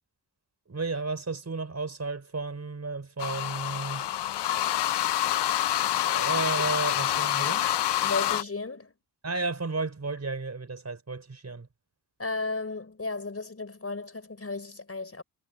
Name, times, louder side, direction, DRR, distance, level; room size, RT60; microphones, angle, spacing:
voice 1, 0.7-4.1 4.5-4.8 6.0-7.7 9.2-11.7, right 3 dB, 35° right, 4.7 m, -33 dB
sound 1, 3.2-8.4, left 12 dB, 65° left, 0.7 m, -27 dB
voice 2, 8.0-8.9 12.2-15.2, left 3 dB, 30° left, 5.1 m, -34 dB
cardioid pair, 60°, 44 cm